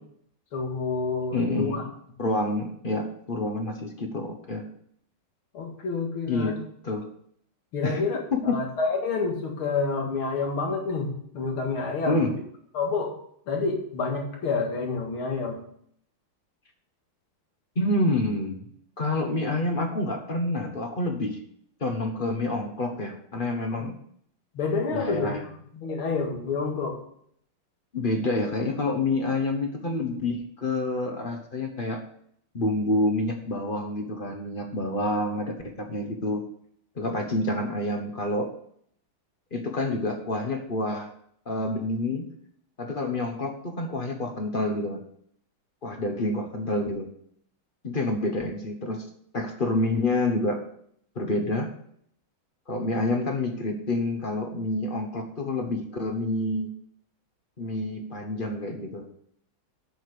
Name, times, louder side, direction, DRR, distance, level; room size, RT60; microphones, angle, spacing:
voice 1, 0.5-1.8 5.5-6.6 7.7-12.2 12.7-13.1 13.5-15.6 23.7-23.9 24.5-25.3 25.6-27.0, left 4 dB, 85° left, 1 dB, 2.7 m, -28 dB
voice 2, 1.3-1.8 2.2-4.7 6.3-6.6 6.8-7.1 7.8-8.0 8.3-8.6 12.1-12.3 17.8-18.6 19.0-21.4 21.8-24.0 24.9-25.4 27.9-32.0 32.5-36.4 37.0-38.5 39.5-41.1 41.5-42.3 42.8-45.0 45.8-47.1 47.8-49.0 49.3-50.6 51.1-51.7 52.7-56.7 57.6-59.1, left 2 dB, 30° left, 4 dB, 1.0 m, -28 dB
8.0 x 6.5 x 6.7 m, 0.67 s
omnidirectional pair, 2.3 m